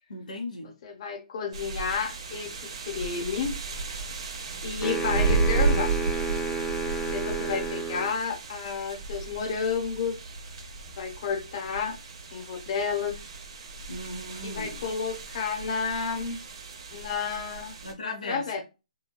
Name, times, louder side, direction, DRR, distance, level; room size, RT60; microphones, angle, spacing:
voice 1, 0.1-0.7 13.9-14.9 17.8-18.6, left 2 dB, 85° left, 0.6 m, -37 dB
voice 2, 0.8-2.5 2.9-3.5 4.6-5.9 7.1-10.2 11.0-12.0 12.3-13.2 14.4-16.4 16.9-18.6, left 5 dB, 45° left, 0.9 m, -31 dB
sound 1, 1.5-17.9, right 4 dB, 45° right, 0.7 m, -33 dB
sound 2, 4.8-8.2, right 4 dB, 5° left, 0.4 m, -31 dB
3.0 x 2.2 x 2.3 m
hypercardioid pair, 145°, 4 cm